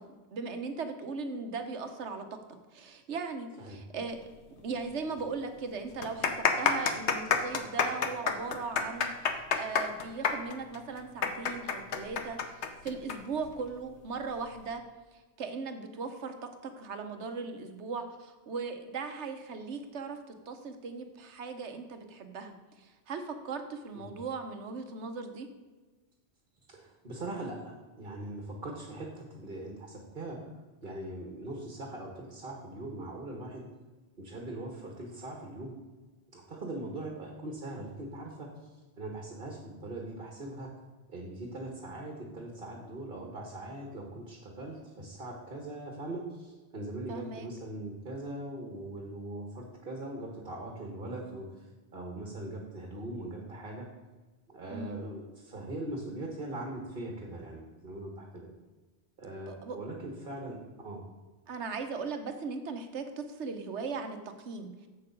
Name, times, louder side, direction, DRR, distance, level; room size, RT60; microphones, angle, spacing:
voice 1, 0.3-2.2 2.7-4.2 4.5-14.8 15.1-20.2 20.5-25.5 47.1-47.5 54.7-55.0 59.5-59.8 61.5-64.7, right 4 dB, 85° right, 7 dB, 1.2 m, -38 dB
sound 1, 4.8-4.9 5.2-5.3 5.9-13.2 13.4-13.5 14.3-14.6, left 6 dB, 80° left, 1.1 m, -28 dB
voice 2, 26.7-30.4 30.8-33.6 34.2-35.7 36.3-38.7 39.0-40.7 41.1-51.6 51.9-53.8 54.5-58.5 59.2-61.0, right 1 dB, 50° right, 0 dB, 1.5 m, -41 dB
7.6 x 6.8 x 5.2 m, 1.2 s
omnidirectional pair, 1.1 m